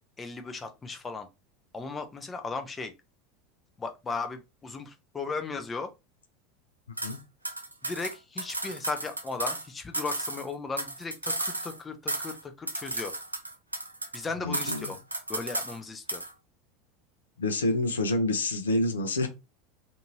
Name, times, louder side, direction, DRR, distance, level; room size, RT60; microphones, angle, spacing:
voice 1, 0.2-1.3 1.7-2.9 3.8-5.9 7.8-13.1 14.1-15.0 15.3-16.2, left 4 dB, 20° left, 0.5 m, -36 dB
sound 1, 7.0-7.2 7.4-9.7 9.9-11.8 12.1-12.4 12.7-14.2 14.5-15.8 16.1-16.3, right 2 dB, 85° right, 0.4 m, -34 dB
voice 2, 14.4-14.9 17.4-19.3, left 2 dB, 75° left, 0.6 m, -27 dB
2.7 x 2.5 x 2.8 m
figure-of-eight pair, 80°, 0 cm